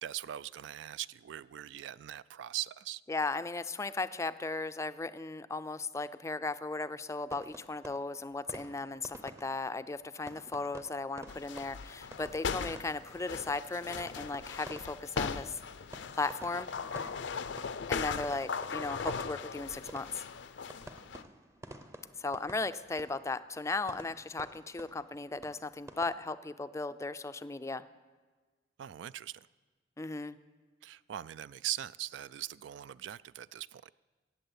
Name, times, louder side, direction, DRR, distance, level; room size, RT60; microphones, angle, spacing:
voice 1, 0.0-3.0 28.8-29.5 30.8-33.9, right 13 dB, 75° right, 19 dB, 0.3 m, -41 dB
voice 2, 3.1-15.6 16.1-16.7 17.9-20.2 22.2-27.8 30.0-30.4, left 3 dB, 15° left, 12 dB, 0.4 m, -36 dB
sound 1, 7.3-26.1, right 1 dB, 15° right, 0.7 m, -52 dB
sound 2, 11.3-21.2, left 5 dB, 75° left, 0.5 m, -39 dB
14.5 x 8.4 x 8.1 m, 1.4 s
head